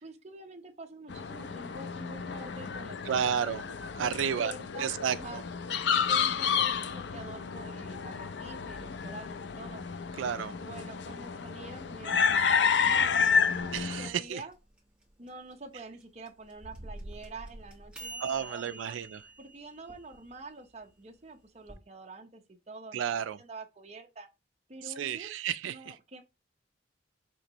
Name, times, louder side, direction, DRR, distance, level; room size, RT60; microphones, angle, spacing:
voice 1, 0.0-3.3 4.0-5.4 5.9-9.8 10.6-13.7 14.0-14.6 15.2-19.0 19.4-24.3 24.7-25.3 25.7-26.2, right 2 dB, 35° right, 0.8 m, -47 dB
sound 1, 1.1-14.1, left 6 dB, 65° left, 0.5 m, -30 dB
voice 2, 3.0-3.6 3.9-4.5 4.8-5.4 10.2-10.5 13.7-14.4 18.2-19.2 22.9-23.4 24.8-26.0, right 8 dB, 90° right, 0.3 m, -32 dB
sound 2, 13.6-21.8, right 3 dB, 5° right, 1.2 m, -49 dB
sound 3, 16.4-18.9, right 1 dB, 70° right, 1.2 m, -47 dB
5.9 x 3.0 x 2.9 m
head